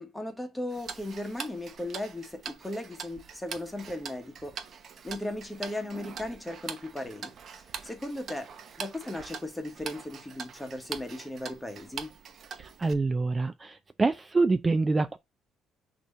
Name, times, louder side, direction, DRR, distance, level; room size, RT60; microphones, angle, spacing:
voice 1, 0.0-4.6 5.0-8.5 8.8-12.1, left 1 dB, 10° left, 1.2 m, -37 dB
Tick-tock, 0.7-12.9, right 6 dB, 45° right, 0.8 m, -43 dB
voice 2, 12.6-15.2, right 3 dB, 20° right, 0.4 m, -26 dB
6.0 x 2.9 x 5.5 m
cardioid pair, 140°, 0 cm